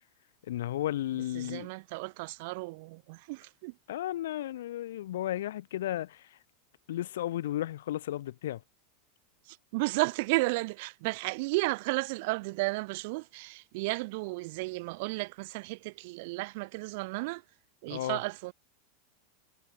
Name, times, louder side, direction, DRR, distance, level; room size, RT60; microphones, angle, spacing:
voice 1, 0.4-1.7 3.9-6.4 6.9-8.6 17.9-18.2, left 13 dB, 85° left, 0.9 m, -34 dB
voice 2, 1.3-3.8 9.4-17.4 17.8-18.5, right 25 dB, 60° right, 0.5 m, -33 dB
supercardioid pair, 135°, 0 cm